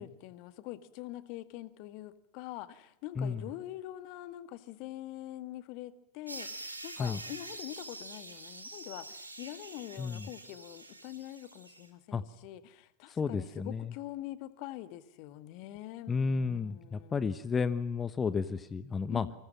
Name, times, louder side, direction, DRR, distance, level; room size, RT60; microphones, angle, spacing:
voice 1, 0.0-17.2 19.1-19.3, left 15 dB, 45° left, 1.8 m, -44 dB
sound 1, 6.3-11.9, right 2 dB, 85° right, 4.3 m, -46 dB
voice 2, 13.1-13.9 16.1-19.3, left 5 dB, 20° left, 1.2 m, -32 dB
28.5 x 26.5 x 7.5 m
figure-of-eight pair, 90°, 0 cm